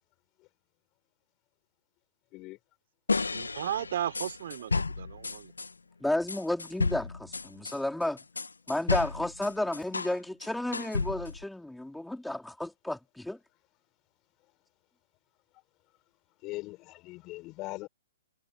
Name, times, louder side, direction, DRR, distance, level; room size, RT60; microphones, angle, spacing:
sound 1, 3.1-5.7 6.3-10.2 10.4-11.4, left 4 dB, 90° left, 1.3 m, -32 dB
voice 1, 3.3-5.5, right 11 dB, 55° right, 3.8 m, -35 dB
voice 2, 6.0-8.2 8.7-13.4, left 1 dB, 5° left, 3.8 m, -32 dB
voice 3, 16.4-17.9, left 21 dB, 30° left, 4.4 m, -40 dB
hypercardioid pair, 125°, 0 cm